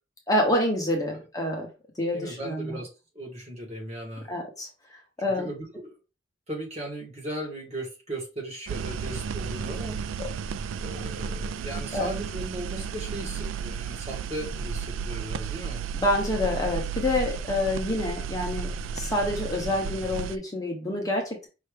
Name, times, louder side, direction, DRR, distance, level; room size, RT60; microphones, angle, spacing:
voice 1, 0.3-1.7 2.0-2.8 4.3-5.5 10.2-10.3 11.9-12.1 15.9-18.7 18.9-21.5, left 1 dB, 20° left, 0 dB, 1.0 m, -27 dB
voice 2, 2.1-2.9 3.1-4.4 5.4-6.0 6.5-10.0 10.8-15.8, right 1 dB, 35° right, -1 dB, 1.7 m, -37 dB
sound 1, 8.7-20.4, right 6 dB, 80° right, 0.3 m, -33 dB
5.6 x 2.7 x 3.4 m, 0.30 s
head